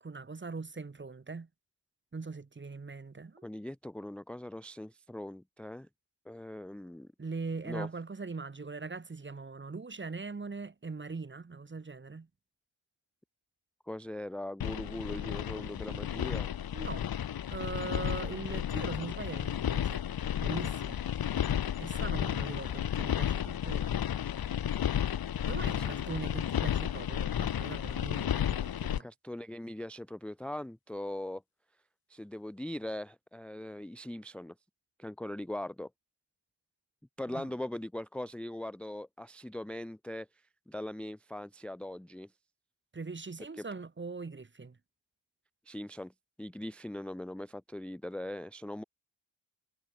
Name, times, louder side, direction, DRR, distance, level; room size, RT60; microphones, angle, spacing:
voice 1, 0.0-1.5 2.1-3.5 7.2-12.3 16.7-17.1 17.5-20.1 20.4-21.4 21.8-23.9 25.5-29.1 37.3-37.5 42.9-44.8, right 4 dB, 25° right, 1.1 m, -41 dB
voice 2, 3.4-5.9 6.3-7.1 7.6-7.9 13.9-16.5 25.7-25.9 29.0-31.4 32.1-34.5 35.0-35.9 37.2-40.3 40.7-42.3 45.7-46.1 46.4-48.8, left 1 dB, ahead, 0.6 m, -40 dB
sound 1, 14.6-29.0, left 10 dB, 50° left, 0.7 m, -32 dB
cardioid pair, 65°, 49 cm